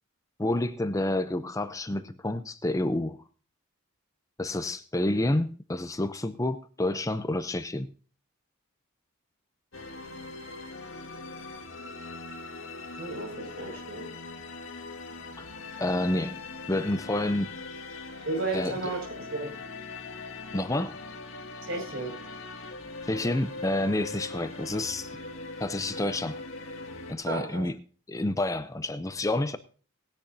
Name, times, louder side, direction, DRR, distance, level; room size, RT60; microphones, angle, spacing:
voice 1, 0.4-3.2 4.4-7.9 15.4-15.5 15.8-16.4 16.7-17.5 18.5-18.7 20.5-21.0 23.0-25.1 25.6-26.4 27.1-27.8 28.1-29.6, left 1 dB, 15° left, 0.5 m, -29 dB
sound 1, 9.7-27.1, left 3 dB, 60° left, 1.9 m, -41 dB
voice 2, 13.0-14.1 18.2-19.0 19.3-19.5 21.7-22.1 27.3-27.6, right 2 dB, 60° right, 5.9 m, -33 dB
19.0 x 10.5 x 2.7 m
head